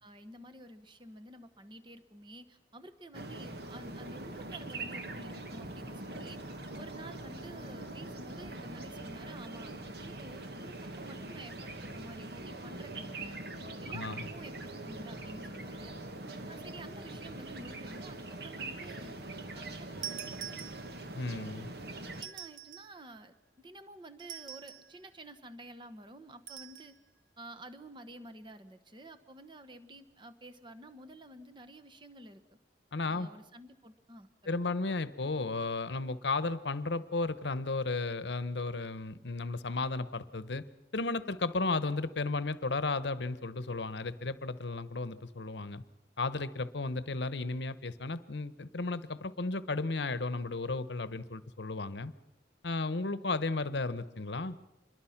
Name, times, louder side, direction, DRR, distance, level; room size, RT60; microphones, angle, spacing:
voice 1, 0.0-6.4 6.8-9.7 10.0-13.4 13.8-15.9 16.5-19.2 19.5-20.6 22.2-27.0 27.4-32.4 33.1-34.7, right 1 dB, 25° right, 8 dB, 1.2 m, -51 dB
sound 1, 3.1-22.2, right 2 dB, 60° right, 1.7 m, -43 dB
voice 2, 13.9-14.3 21.2-21.7 32.9-33.3 34.5-40.6 40.9-45.8 46.2-52.1 52.6-54.6, left 3 dB, 70° left, 15 dB, 1.0 m, -34 dB
sound 2, 20.0-21.2 22.1-23.0 24.2-25.0 26.5-26.9, right 9 dB, 80° right, 1.5 m, -44 dB
26.5 x 22.0 x 5.9 m, 0.92 s
head